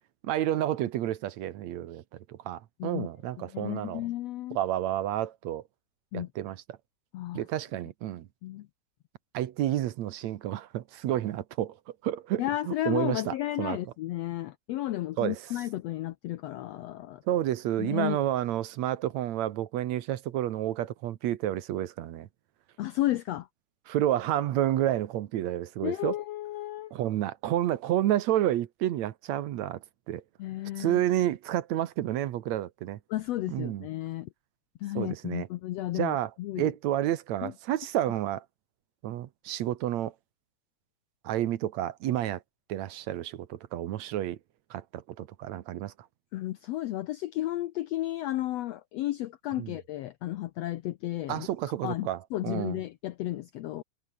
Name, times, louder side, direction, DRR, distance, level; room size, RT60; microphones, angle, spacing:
voice 1, 0.2-4.1 4.5-5.6 6.1-6.6 7.3-8.3 9.3-11.8 12.0-13.8 15.2-15.4 17.3-22.3 23.9-26.2 26.9-30.2 30.8-33.0 33.5-33.9 35.0-35.5 35.9-36.3 36.6-38.5 39.0-40.1 41.2-42.4 42.7-44.4 44.7-45.9 49.6-49.7 51.3-52.8, right 12 dB, 65° right, 2.1 m, -30 dB
voice 2, 3.5-4.6 6.1-6.3 7.1-7.4 8.4-8.7 12.4-17.2 17.8-18.2 22.8-23.5 25.8-26.9 30.4-31.0 33.1-34.3 34.8-36.7 37.4-37.5 46.3-51.5 51.8-53.8, left 15 dB, 80° left, 1.5 m, -33 dB
omnidirectional pair, 3.7 m